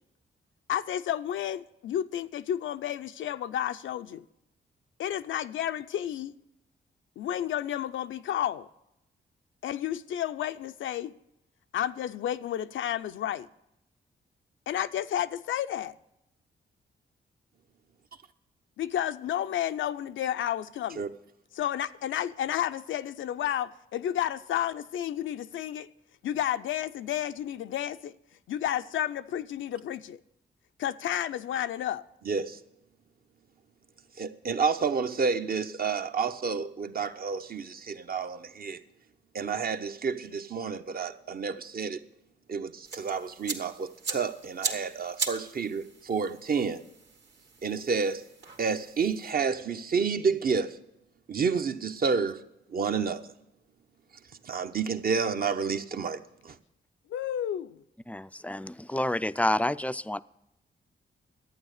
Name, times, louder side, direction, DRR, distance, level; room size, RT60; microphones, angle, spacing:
voice 1, 0.7-4.2 5.0-6.3 7.2-8.7 9.6-11.1 11.7-13.5 14.7-15.9 18.8-21.1 21.5-25.9 26.2-28.1 28.5-30.2 30.8-32.0 57.1-57.8, left 11 dB, 80° left, 0.5 m, -31 dB
voice 2, 32.3-32.6 34.2-38.8 39.3-42.0 42.5-46.8 47.6-48.2 48.6-50.8 51.3-52.4 52.7-53.3 54.4-56.6, right 5 dB, 50° right, 0.8 m, -30 dB
sound 1, 42.8-49.3, right 4 dB, 65° right, 1.8 m, -39 dB
voice 3, 58.1-60.2, left 1 dB, 5° left, 0.3 m, -29 dB
11.5 x 9.0 x 6.5 m
cardioid pair, 75°, 20 cm